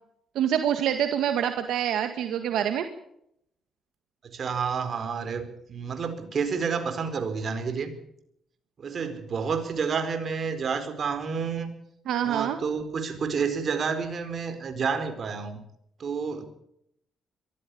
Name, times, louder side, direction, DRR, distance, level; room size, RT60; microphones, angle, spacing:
voice 1, 0.4-2.9 12.1-12.6, right 9 dB, 80° right, 7 dB, 1.8 m, -26 dB
voice 2, 4.3-7.9 8.8-11.7 12.2-15.6 16.0-16.5, right 5 dB, 50° right, 8 dB, 4.5 m, -29 dB
23.0 x 14.5 x 8.6 m, 0.75 s
cardioid pair, 90°, 0 cm